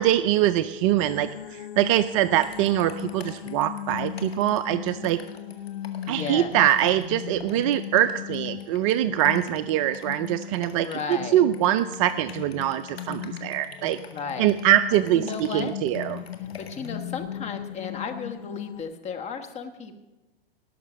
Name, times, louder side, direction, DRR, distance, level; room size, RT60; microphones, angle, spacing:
voice 1, 0.0-5.2 6.1-14.0 14.4-16.2, right 12 dB, 35° right, 12 dB, 0.4 m, -23 dB
sound 1, 1.0-18.8, left 12 dB, 60° left, 0.6 m, -38 dB
sound 2, 2.4-17.0, left 6 dB, 85° left, 1.9 m, -47 dB
voice 2, 6.1-6.5 10.8-11.4 14.1-14.5 15.1-15.7 16.6-19.9, left 5 dB, 20° left, 6 dB, 1.2 m, -34 dB
18.0 x 6.5 x 6.2 m, 1.1 s
hypercardioid pair, 120°, 30 cm